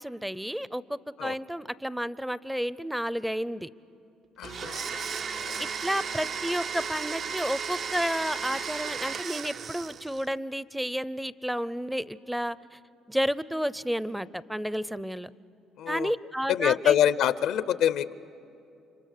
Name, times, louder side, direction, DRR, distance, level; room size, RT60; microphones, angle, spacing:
voice 1, 0.0-3.7 5.6-12.8 13.1-15.3 15.9-17.0, equal, 5° right, 18 dB, 0.5 m, -31 dB
voice 2, 4.4-5.7 15.8-16.1 16.5-18.3, left 10 dB, 75° left, 16 dB, 0.6 m, -26 dB
Domestic sounds home sounds, 4.4-10.3, right 6 dB, 50° right, 0.6 m, -34 dB
29.5 x 26.0 x 6.6 m, 2.7 s
cardioid pair, 85°, 0 cm